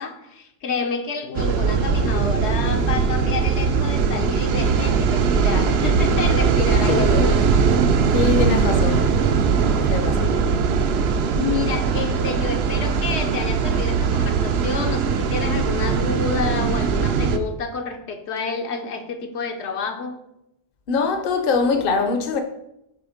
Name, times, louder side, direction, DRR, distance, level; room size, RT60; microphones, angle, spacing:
voice 1, 0.0-7.5 10.2-10.5 11.3-20.1, left 5 dB, 75° left, 1.0 m, -29 dB
sound 1, 1.3-17.4, right 5 dB, 70° right, 0.8 m, -20 dB
voice 2, 6.9-7.2 8.1-9.1 9.9-10.3 20.9-22.4, left 4 dB, 55° left, 0.8 m, -22 dB
7.8 x 3.3 x 5.0 m
omnidirectional pair, 1.2 m